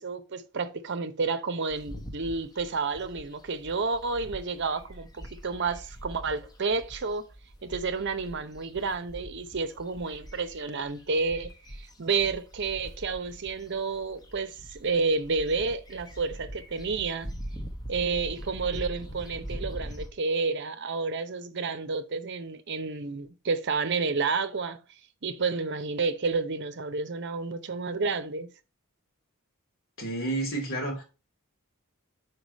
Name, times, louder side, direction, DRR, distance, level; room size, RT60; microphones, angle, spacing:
voice 1, 0.0-7.2 7.6-17.3 17.9-24.8 25.2-28.5, right 4 dB, 55° right, 0.7 m, -30 dB
sound 1, 1.7-20.1, equal, 20° left, 1.0 m, -42 dB
voice 2, 30.0-31.0, right 2 dB, 65° left, 2.8 m, -30 dB
4.8 x 4.5 x 5.3 m
head